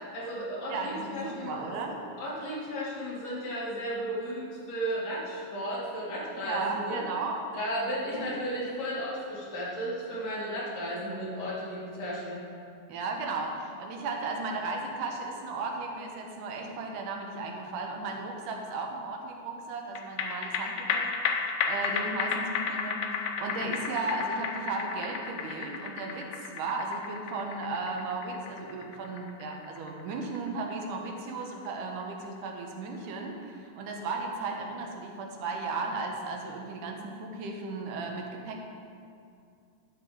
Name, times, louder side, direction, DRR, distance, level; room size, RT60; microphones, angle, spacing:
voice 1, 0.1-1.8 2.2-7.0 7.5-12.4, equal, 55° left, -7 dB, 3.2 m, -34 dB
voice 2, 0.7-2.0 6.5-7.4 8.1-8.3 12.9-38.6, right 3 dB, 80° right, 1 dB, 2.5 m, -35 dB
sound 1, 19.9-32.6 32.9-33.0, left 6 dB, 90° left, 1.3 m, -34 dB
11.0 x 6.3 x 4.9 m, 2.4 s
omnidirectional pair, 3.6 m